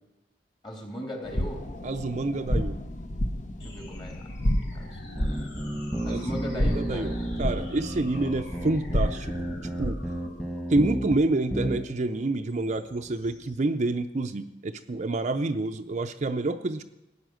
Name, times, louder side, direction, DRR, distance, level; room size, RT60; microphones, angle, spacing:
voice 1, 0.6-1.7 3.6-4.3 4.7-5.5 6.0-7.5, equal, 25° left, 0 dB, 3.3 m, -38 dB
sound 1, 1.2-10.1, equal, 45° left, 0.9 m, -31 dB
voice 2, 1.8-2.8 6.1-9.3 9.8-10.0 10.7-16.8, right 2 dB, 40° right, 7 dB, 0.5 m, -28 dB
sound 2, 3.6-13.6, left 1 dB, 75° left, 2.5 m, -48 dB
sound 3, 5.2-11.2 11.5-11.8, right 1 dB, 5° left, 1.6 m, -32 dB
15.5 x 9.6 x 6.3 m, 0.94 s
head